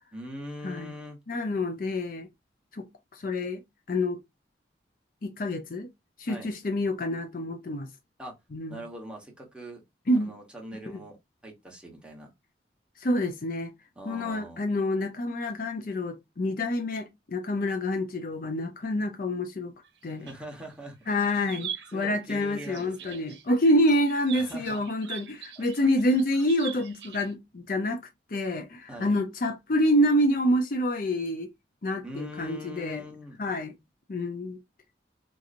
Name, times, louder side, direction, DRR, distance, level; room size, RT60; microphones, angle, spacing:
voice 1, 0.1-1.2 6.3-6.5 8.2-8.4 8.7-9.8 10.2-11.2 11.4-12.3 14.0-14.7 20.2-21.0 21.4-23.3 24.3-24.9 25.6-26.2 28.9-29.1 32.0-33.4, equal, 5° right, 1.1 m, -42 dB
voice 2, 1.3-2.3 2.7-3.6 3.9-4.2 5.2-5.9 6.2-7.9 8.5-8.8 10.1-10.3 10.9-11.0 13.0-13.7 14.1-19.7 20.0-20.3 21.1-28.0 28.3-31.5 31.8-33.0 33.4-33.7 34.1-34.6, left 1 dB, 50° left, 0.5 m, -27 dB
sound 1, 19.8-20.7 21.0-27.3, right 9 dB, 75° right, 0.7 m, -42 dB
3.8 x 2.9 x 2.5 m
head